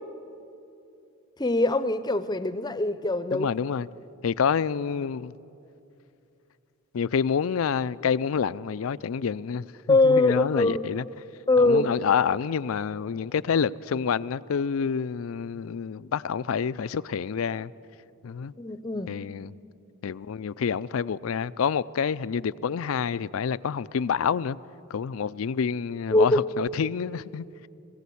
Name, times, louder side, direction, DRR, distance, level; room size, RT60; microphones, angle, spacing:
voice 1, 1.4-3.5 9.9-10.8 11.5-11.9 18.6-19.2 26.1-26.4, left 2 dB, 20° left, 0.6 m, -22 dB
voice 2, 3.3-3.9 4.2-5.3 6.9-11.0 11.6-17.7 18.2-18.5 19.1-19.5 20.0-24.6 24.9-27.7, left 6 dB, 85° left, 0.4 m, -28 dB
21.5 x 16.0 x 8.5 m
head